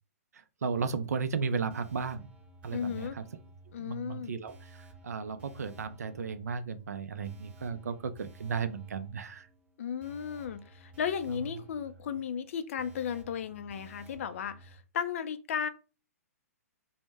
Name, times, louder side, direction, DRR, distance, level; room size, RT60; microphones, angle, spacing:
voice 1, 0.6-2.2 2.6-3.2 3.8-9.5, right 5 dB, 80° right, 11 dB, 0.4 m, -34 dB
sound 1, 0.7-14.8, right 2 dB, 15° right, 0.6 m, -54 dB
voice 2, 2.7-3.2 3.7-4.3 9.8-15.7, left 7 dB, 55° left, 11 dB, 0.4 m, -35 dB
2.1 x 2.0 x 3.2 m, 0.32 s
hypercardioid pair, 125°, 8 cm